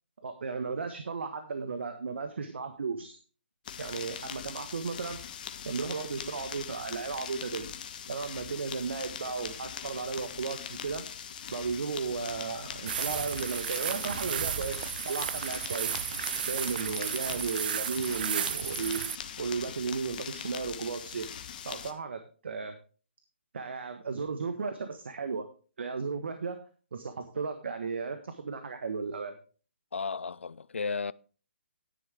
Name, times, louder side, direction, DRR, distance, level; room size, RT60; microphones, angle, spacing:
voice 1, 0.2-3.2 3.8-5.2 5.6-7.7 8.1-11.0 11.5-14.8 15.0-15.9 16.5-21.3 21.6-22.7 23.5-25.5 25.8-26.6 26.9-29.3, right 5 dB, 65° right, 1.4 m, -35 dB
sound 1, 3.6-21.9, left 8 dB, 40° left, 1.2 m, -41 dB
sound 2, 12.9-19.2, right 9 dB, 45° right, 0.5 m, -34 dB
voice 2, 29.9-31.1, left 5 dB, 80° left, 0.4 m, -34 dB
11.0 x 10.0 x 3.5 m
figure-of-eight pair, 145°, 7 cm